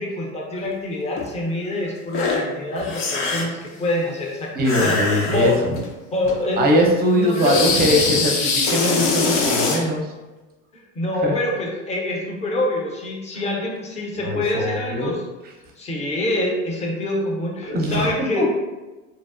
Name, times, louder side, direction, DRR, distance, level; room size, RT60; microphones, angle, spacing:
voice 1, 0.0-5.0 5.3-5.6 6.1-6.6 7.1-8.0 10.7-15.2 15.8-18.6, left 1 dB, 15° left, -1 dB, 0.6 m, -25 dB
sound 1, 1.2-1.3 2.1-2.4 2.7-3.6 4.6-5.9 6.2-6.4 7.3-9.8, left 4 dB, 60° left, 0.6 m, -23 dB
voice 2, 4.5-5.7 6.6-10.1 11.2-11.3 14.2-15.1 17.6-18.5, equal, 25° right, 1 dB, 0.6 m, -21 dB
2.7 x 2.0 x 2.4 m, 1.1 s
hypercardioid pair, 90°, 38 cm